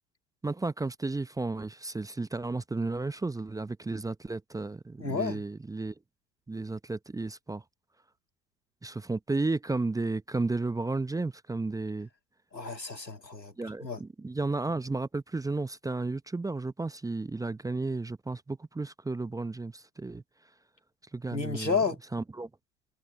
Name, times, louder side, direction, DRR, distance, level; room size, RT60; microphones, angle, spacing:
voice 1, 0.4-5.9 6.5-7.6 8.8-12.1 13.6-20.2 21.1-21.8 22.1-22.5, right 3 dB, 5° right, 1.0 m, -33 dB
voice 2, 5.0-5.4 12.5-13.5 13.8-14.0 21.3-22.0, left 5 dB, 90° left, 2.7 m, -31 dB
figure-of-eight pair, 80°, 48 cm